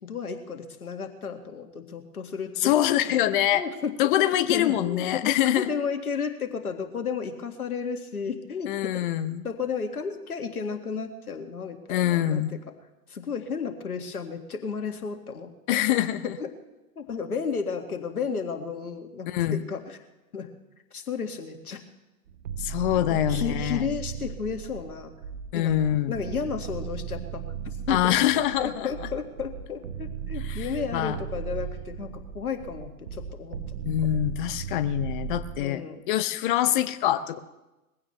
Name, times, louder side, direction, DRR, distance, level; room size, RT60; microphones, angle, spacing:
voice 1, 0.0-2.7 3.5-4.1 4.5-9.1 9.4-12.6 13.1-15.8 16.4-16.5 17.0-20.0 20.3-20.5 20.9-21.8 23.1-25.1 25.5-25.8 26.1-28.2 28.6-33.8 35.6-36.0, left 6 dB, 80° left, 5 dB, 2.1 m, -33 dB
voice 2, 2.6-3.6 4.0-5.7 8.7-9.4 11.9-12.6 15.7-16.3 19.3-19.6 22.6-23.9 25.5-26.2 27.9-29.1 30.4-30.7 30.9-31.2 33.8-37.4, left 12 dB, 35° left, 12 dB, 0.8 m, -25 dB
sound 1, 22.3-35.7, right 8 dB, 55° right, 1.4 m, -36 dB
21.5 x 15.5 x 3.3 m, 1.0 s
figure-of-eight pair, 120°, 44 cm